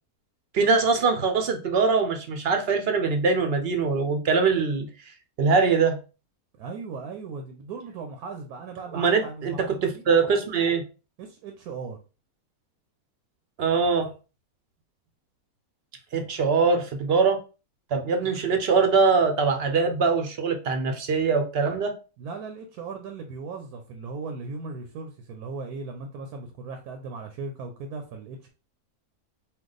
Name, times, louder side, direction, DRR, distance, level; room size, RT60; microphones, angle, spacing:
voice 1, 0.5-4.9 5.4-6.0 8.9-9.5 9.8-10.8 13.6-14.1 16.1-17.4 17.9-21.9, right 4 dB, 60° right, 0.7 m, -22 dB
voice 2, 6.6-10.0 11.2-12.0 22.2-28.5, right 4 dB, 80° right, 1.2 m, -37 dB
4.5 x 2.3 x 3.9 m
omnidirectional pair, 1.6 m